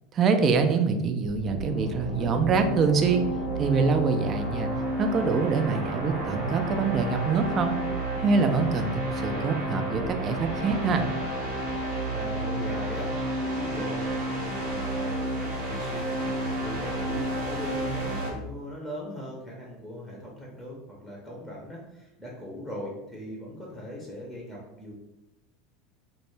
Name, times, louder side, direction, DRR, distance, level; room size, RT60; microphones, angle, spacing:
voice 1, 0.1-3.2 3.6-4.7 5.0-7.8 8.2-11.1, right 5 dB, 35° right, 6 dB, 0.3 m, -25 dB
sound 1, 1.3-18.3, right 1 dB, 80° right, 0.7 m, -31 dB
voice 2, 12.1-24.9, equal, 5° left, -4 dB, 0.6 m, -39 dB
2.1 x 2.0 x 3.1 m, 0.94 s
supercardioid pair, 105°, 0 cm